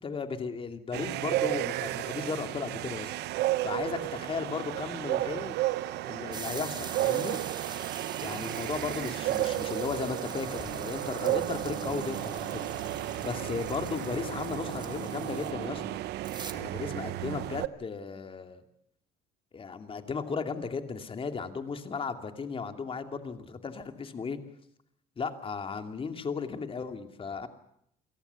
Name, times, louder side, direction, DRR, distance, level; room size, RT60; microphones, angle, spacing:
voice 1, 0.0-3.1 3.6-5.6 6.1-7.4 8.2-12.6 12.9-15.8 16.5-18.6 19.5-24.4 25.2-27.5, left 5 dB, 30° left, 7 dB, 2.7 m, -35 dB
sound 1, 0.9-17.7, right 16 dB, 80° right, 0.9 m, -33 dB
sound 2, 6.3-15.5 16.2-16.5, right 4 dB, 25° right, 2.2 m, -44 dB
sound 3, 10.4-16.0, left 4 dB, 60° left, 6.1 m, -47 dB
28.0 x 18.5 x 7.0 m, 0.73 s
cardioid pair, 110°, 17 cm